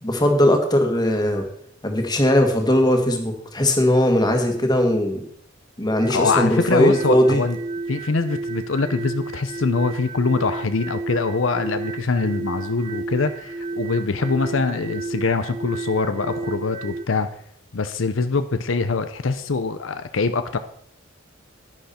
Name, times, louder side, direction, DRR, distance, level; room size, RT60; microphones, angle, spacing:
voice 1, 0.0-1.5 1.8-5.3 5.8-7.4 14.6-14.7, left 1 dB, 20° left, 4 dB, 1.8 m, -19 dB
sound 1, 6.0-17.0, right 3 dB, 35° right, 0.6 m, -32 dB
voice 2, 6.1-7.6 7.9-17.3 17.7-20.6, left 4 dB, 80° left, 10 dB, 0.7 m, -23 dB
10.5 x 10.5 x 4.3 m, 0.65 s
head